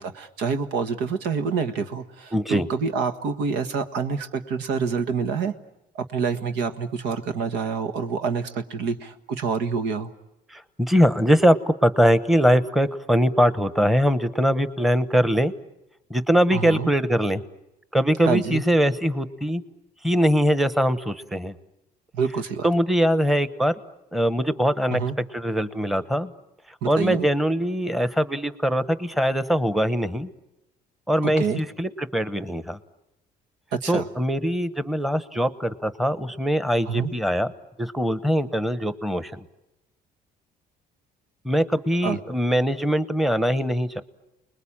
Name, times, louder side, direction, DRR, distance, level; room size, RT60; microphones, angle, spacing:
voice 1, 0.0-5.5 5.9-10.1 16.5-16.9 18.2-18.6 22.1-22.7 24.9-25.2 26.8-27.2 31.2-31.6 33.8-34.1 36.9-37.1 42.0-42.2, right 5 dB, 90° right, 9 dB, 1.6 m, -27 dB
voice 2, 2.3-2.7 10.5-15.5 16.1-17.4 17.9-19.6 20.0-21.5 22.6-23.7 24.1-25.0 25.3-26.3 26.9-30.3 31.1-32.8 33.9-37.5 37.8-39.4 41.4-44.0, equal, ahead, 12 dB, 1.1 m, -22 dB
30.0 x 21.0 x 8.8 m, 0.94 s
cardioid pair, 110°, 17 cm